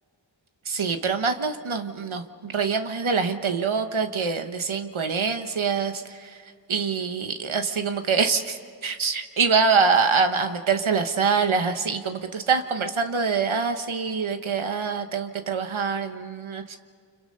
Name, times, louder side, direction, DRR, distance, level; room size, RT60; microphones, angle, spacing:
voice 1, 0.7-6.4 6.7-16.8, right 5 dB, 85° right, 7 dB, 1.3 m, -25 dB
29.5 x 26.0 x 5.4 m, 2.1 s
wide cardioid pair, 45°, 47 cm